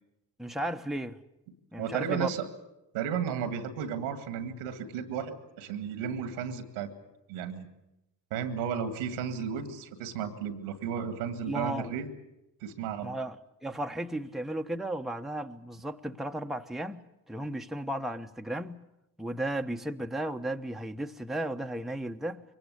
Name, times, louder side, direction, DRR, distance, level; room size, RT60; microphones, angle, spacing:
voice 1, 0.4-1.2 1.7-2.3 11.5-12.0 13.0-13.4 13.6-18.8 19.2-22.4, right 1 dB, ahead, 1.1 m, -34 dB
voice 2, 1.8-2.5 2.9-6.9 7.3-7.7 8.3-12.1 12.6-13.1, right 7 dB, 85° right, 2.0 m, -33 dB
23.0 x 19.0 x 8.3 m
hypercardioid pair, 45°, 48 cm